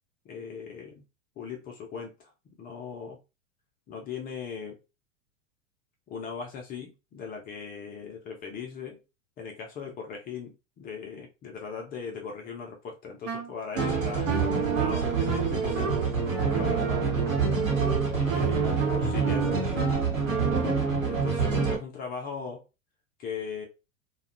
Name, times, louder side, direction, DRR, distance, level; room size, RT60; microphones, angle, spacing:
voice 1, 0.2-1.0 1.4-2.3 2.6-3.2 3.9-4.8 6.1-9.0 9.4-16.0 16.6-17.2 18.1-20.1 21.0-22.6 23.2-23.7, left 6 dB, 25° left, 0.5 m, -39 dB
Wind instrument woodwind instrument, 13.2-20.8, right 6 dB, 65° right, 0.9 m, -34 dB
sound 1, 13.8-21.8, right 5 dB, 80° right, 1.0 m, -26 dB
2.8 x 2.2 x 2.4 m
figure-of-eight pair, 90°, 39 cm